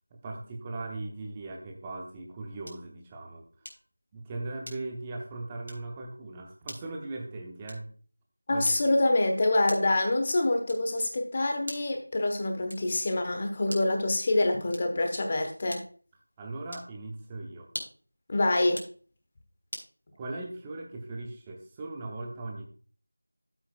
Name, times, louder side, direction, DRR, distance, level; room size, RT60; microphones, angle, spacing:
voice 1, 0.1-3.5 4.1-7.8 8.5-8.7 16.4-17.7 20.2-22.6, right 2 dB, 10° right, 1 dB, 0.7 m, -39 dB
sound 1, 2.6-3.0 3.6-4.0 4.6-5.1 5.6-5.9 6.6-6.9 7.6-8.0 8.6-9.1 9.7-10.0 10.7-11.0 11.6-12.0 12.7-13.0 13.6-14.0 14.7-15.1 15.7-16.1 16.7-17.0 17.6-18.1 18.6-19.0 19.7-20.0, equal, 80° right, 3.8 m, -43 dB
voice 2, 8.5-15.8 18.3-18.8, left 2 dB, 20° left, 4 dB, 1.0 m, -26 dB
13.5 x 8.0 x 2.3 m, 0.40 s
figure-of-eight pair, 170°, 0 cm